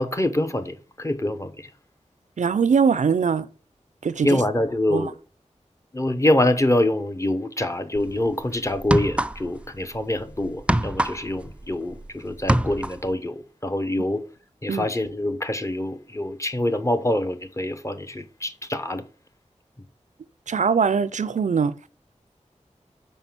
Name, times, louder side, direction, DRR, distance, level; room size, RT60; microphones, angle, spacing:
voice 1, 0.0-1.5 4.2-5.1 5.9-14.2 14.6-19.0, left 1 dB, 25° left, 0.8 m, -25 dB
voice 2, 2.4-3.5 4.0-4.4 4.9-5.1 14.7-14.9 20.5-21.8, right 6 dB, 80° right, 0.4 m, -21 dB
sound 1, 8.0-8.2 8.8-9.7 9.9-12.1 12.3-13.1, right 1 dB, 10° right, 0.3 m, -24 dB
5.5 x 4.8 x 5.9 m
wide cardioid pair, 80°, 13 cm